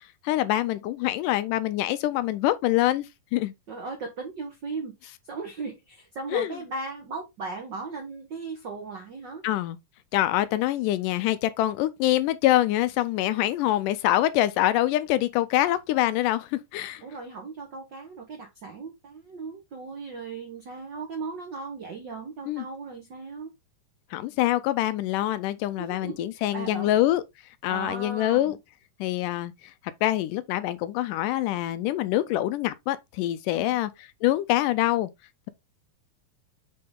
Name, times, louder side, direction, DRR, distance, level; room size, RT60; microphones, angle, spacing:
voice 1, 0.0-3.1 3.3-3.5 6.3-6.5 9.4-9.8 10.1-17.0 22.5-22.7 24.1-27.2 27.6-28.6 29.0-29.5 30.0-35.1, left 14 dB, 80° left, 2.0 m, -25 dB
voice 2, 3.7-9.4 17.0-23.5 25.8-26.9 27.7-28.6 33.5-33.8, right 4 dB, 75° right, 1.0 m, -37 dB
7.7 x 3.8 x 3.6 m
omnidirectional pair, 3.9 m